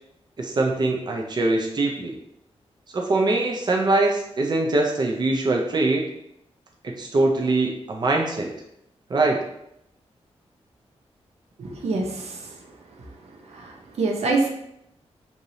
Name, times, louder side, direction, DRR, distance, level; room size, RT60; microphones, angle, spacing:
voice 1, 0.4-2.1 2.9-6.0 6.8-8.5 9.1-9.4, right 2 dB, 40° right, 0 dB, 0.5 m, -22 dB
voice 2, 11.6-12.5 13.5-14.5, right 3 dB, 75° right, 1 dB, 0.7 m, -26 dB
4.6 x 2.7 x 2.7 m, 0.78 s
wide cardioid pair, 95°, 11 cm